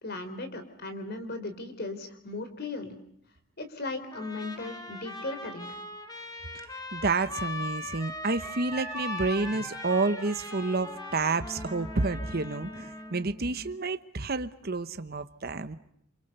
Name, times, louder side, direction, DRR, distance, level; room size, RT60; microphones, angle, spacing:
voice 1, 0.0-2.9 3.6-5.8, left 2 dB, 50° left, 3.8 m, -37 dB
Trumpet, 4.1-13.2, left 2 dB, 20° left, 2.4 m, -40 dB
voice 2, 6.9-15.8, right 3 dB, 45° right, 1.0 m, -29 dB
Wind instrument woodwind instrument, 8.4-13.8, equal, 5° right, 1.2 m, -44 dB
28.5 x 27.5 x 6.8 m
head